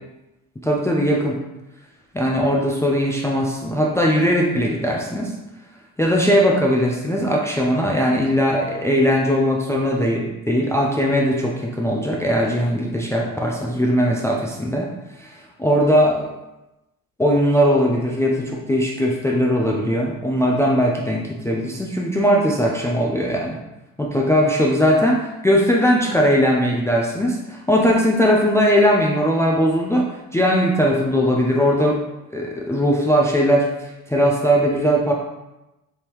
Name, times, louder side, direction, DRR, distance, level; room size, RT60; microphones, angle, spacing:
voice 1, 0.6-1.4 2.1-5.3 6.0-14.9 15.2-16.3 17.2-23.6 24.0-30.1 30.3-32.0 32.3-35.1, equal, 10° left, -1 dB, 0.4 m, -19 dB
3.4 x 2.7 x 2.9 m, 0.97 s
cardioid pair, 85°, 36 cm